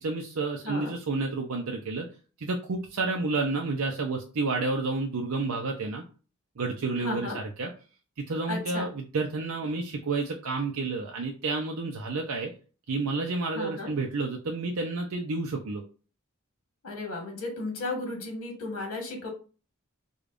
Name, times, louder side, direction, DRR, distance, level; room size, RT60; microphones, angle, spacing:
voice 1, 0.0-2.1 2.4-6.0 6.6-7.7 8.3-12.5 12.9-15.8, right 3 dB, 90° right, 1 dB, 0.6 m, -30 dB
voice 2, 7.0-7.4 8.5-8.9 13.5-13.9 16.8-19.3, left 2 dB, 70° left, 1 dB, 1.4 m, -34 dB
5.0 x 2.3 x 2.4 m, 0.36 s
head